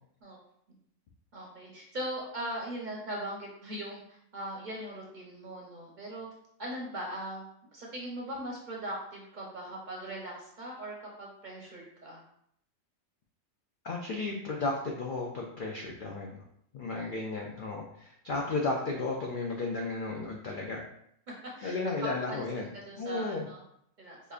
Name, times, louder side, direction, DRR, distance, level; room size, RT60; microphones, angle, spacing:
voice 1, 1.3-6.3 6.6-7.4 7.7-12.2 16.9-17.1 21.6-21.8 22.3-23.6 24.0-24.2, right 1 dB, 45° right, -3 dB, 0.8 m, -40 dB
voice 2, 13.8-16.4 16.7-20.8 21.6-22.7 23.0-23.5, left 3 dB, 65° left, -1 dB, 0.5 m, -34 dB
4.8 x 2.5 x 2.4 m, 0.72 s
omnidirectional pair, 1.3 m